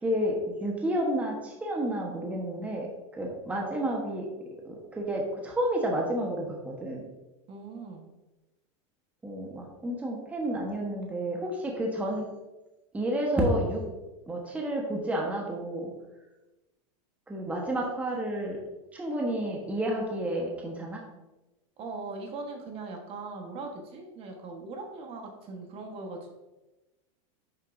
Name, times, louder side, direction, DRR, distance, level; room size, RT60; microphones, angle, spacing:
voice 1, 0.0-2.9 3.1-4.3 4.6-7.0 9.2-12.2 12.9-13.8 14.3-15.9 17.3-18.6 18.9-21.0, right 1 dB, 10° right, -1 dB, 1.2 m, -30 dB
voice 2, 7.5-8.1 21.8-26.3, right 3 dB, 35° right, 3 dB, 1.4 m, -40 dB
10.5 x 6.6 x 2.7 m, 1.1 s
supercardioid pair, 145°, 16 cm